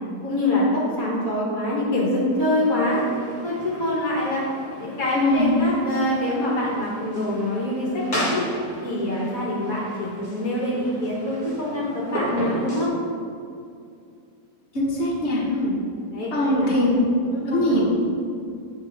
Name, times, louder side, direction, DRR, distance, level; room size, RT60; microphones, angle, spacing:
voice 1, 0.2-3.0 3.4-4.4 4.8-8.4 8.8-12.9 15.4-15.8 16.1-16.7 17.3-17.8, left 1 dB, 60° left, -6 dB, 1.6 m, -25 dB
sound 1, 2.3-12.9, equal, 25° left, 1.8 m, -35 dB
voice 2, 5.1-5.5 14.7-15.4 16.3-17.0 17.5-17.8, equal, 40° left, -5 dB, 1.6 m, -21 dB
8.3 x 4.2 x 4.8 m, 2.4 s
omnidirectional pair, 1.8 m